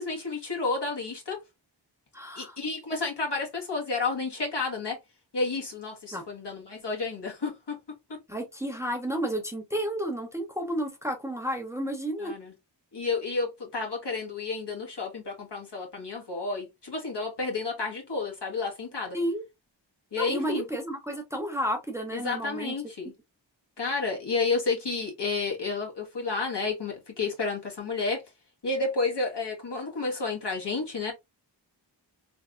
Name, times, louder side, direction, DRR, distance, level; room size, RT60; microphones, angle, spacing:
voice 1, 0.0-1.4 2.3-5.0 5.3-7.8 8.1-8.2 12.2-12.5 12.9-19.2 20.1-20.6 22.1-23.1 23.8-28.2 28.6-31.1, left 3 dB, 60° left, 1.5 m, -31 dB
voice 2, 2.1-2.6 6.1-6.2 8.3-12.3 19.1-19.4 20.2-22.7, equal, 5° right, 0.9 m, -31 dB
3.4 x 3.3 x 2.5 m
wide cardioid pair, 70°, 46 cm